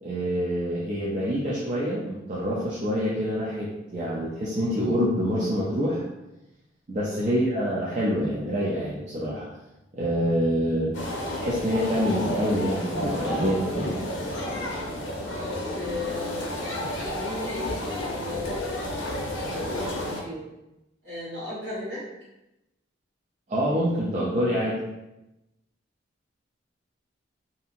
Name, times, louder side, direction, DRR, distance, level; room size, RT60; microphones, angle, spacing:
voice 1, 0.0-6.0 6.9-9.5 9.9-11.0 11.4-13.9 23.5-24.8, equal, 40° right, -7 dB, 0.4 m, -26 dB
voice 2, 7.0-7.4 15.4-20.5 21.0-22.0, left 2 dB, 65° right, -8 dB, 1.4 m, -36 dB
sound 1, 10.9-20.2, left 1 dB, 70° left, 0.6 m, -31 dB
2.7 x 2.6 x 2.4 m, 0.94 s
head